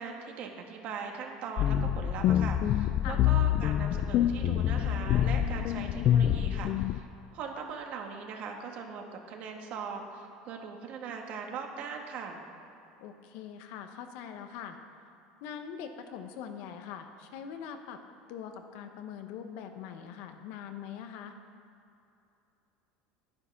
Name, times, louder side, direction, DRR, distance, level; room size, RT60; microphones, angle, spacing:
voice 1, 0.0-7.1 7.3-12.4, right 5 dB, 50° right, 3 dB, 1.5 m, -40 dB
sound 1, 1.6-7.0, left 11 dB, 45° left, 0.4 m, -26 dB
voice 2, 13.0-14.8 15.4-18.0 18.3-21.4, left 8 dB, 65° left, 7 dB, 1.0 m, -42 dB
10.0 x 9.7 x 5.9 m, 2.7 s
cardioid pair, 145°, 3 cm